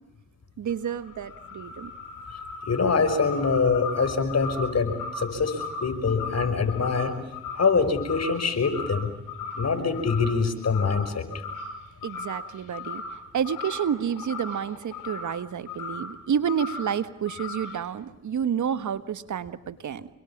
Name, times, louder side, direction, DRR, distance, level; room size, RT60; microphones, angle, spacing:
voice 1, 0.6-1.9 12.0-20.1, right 8 dB, 70° right, 14 dB, 1.5 m, -30 dB
sound 1, 0.7-8.4 8.6-9.0 9.3-10.4 10.6-11.0 11.3-11.7 12.0-13.1 13.4-15.3 15.7-16.0 16.5-16.8 17.3-17.7, left 4 dB, 90° left, 5.4 m, -36 dB
voice 2, 2.6-7.1 7.5-9.1 9.5-11.2, left 5 dB, 55° left, 8 dB, 5.6 m, -24 dB
28.0 x 23.5 x 7.3 m, 0.98 s
supercardioid pair, 45°, 31 cm